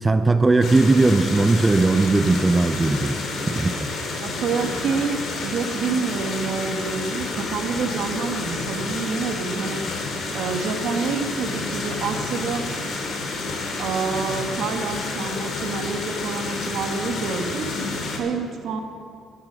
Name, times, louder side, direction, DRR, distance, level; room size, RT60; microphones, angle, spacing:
voice 1, 0.0-3.2 3.5-3.9, right 3 dB, 20° right, 9 dB, 0.4 m, -18 dB
sound 1, 0.6-18.2, left 3 dB, 60° left, 2.4 m, -29 dB
voice 2, 4.2-10.1 10.3-12.7 13.8-17.7 18.1-18.8, right 5 dB, 70° right, 5 dB, 1.3 m, -27 dB
13.0 x 9.2 x 6.3 m, 2.5 s
cardioid pair, 105°, 0 cm